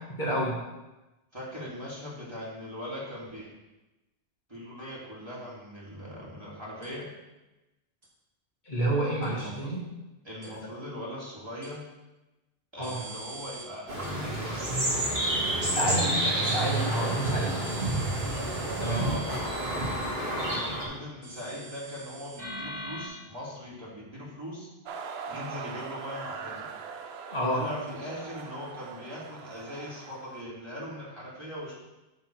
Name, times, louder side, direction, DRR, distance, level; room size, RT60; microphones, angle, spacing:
voice 1, 0.2-0.6 8.7-9.8 12.8-13.0 15.7-17.8 18.8-19.0 27.3-27.7, right 1 dB, 45° left, -6 dB, 2.0 m, -29 dB
voice 2, 1.3-3.5 4.5-7.1 9.3-9.7 10.2-11.9 12.7-16.4 17.6-17.8 18.8-19.7 20.4-24.7 25.3-26.7 27.5-31.8, left 1 dB, 25° right, -7 dB, 2.4 m, -40 dB
sound 1, 6.8-6.9 8.0-8.1 9.2-9.3 10.4-10.5 11.6-11.7 12.8-13.6 14.0-14.1 15.2-15.3 16.4-20.0 21.2-23.1, right 2 dB, 40° right, 2.3 m, -42 dB
sound 2, 13.9-20.9, right 1 dB, 55° right, 2.2 m, -29 dB
sound 3, 24.9-30.4, right 6 dB, 75° right, 0.8 m, -41 dB
11.0 x 3.8 x 4.5 m, 1.0 s
omnidirectional pair, 1.1 m